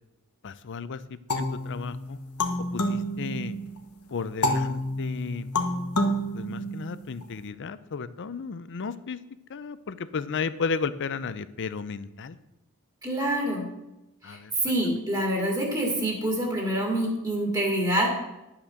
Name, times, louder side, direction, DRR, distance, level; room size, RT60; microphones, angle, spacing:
voice 1, 0.4-1.0 1.3-2.2 2.7-3.5 4.1-5.5 6.3-9.2 9.5-12.4 14.2-14.5, left 5 dB, 55° left, 15 dB, 0.5 m, -33 dB
sound 1, 1.3-3.8 4.4-7.2, left 1 dB, 85° left, 1.2 m, -29 dB
voice 2, 13.0-13.6 14.2-18.1, right 1 dB, 15° right, -1 dB, 2.2 m, -26 dB
11.0 x 5.8 x 6.4 m, 0.94 s
head